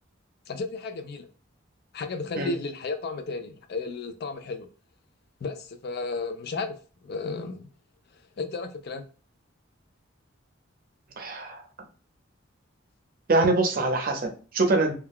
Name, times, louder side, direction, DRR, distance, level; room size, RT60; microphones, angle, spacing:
voice 1, 0.5-1.3 1.9-4.7 5.4-6.7 7.0-7.7 8.4-9.0, left 3 dB, 50° left, 0.4 m, -33 dB
voice 2, 11.2-11.6 13.3-14.9, right 2 dB, 45° right, 0.6 m, -24 dB
2.3 x 2.2 x 3.5 m
head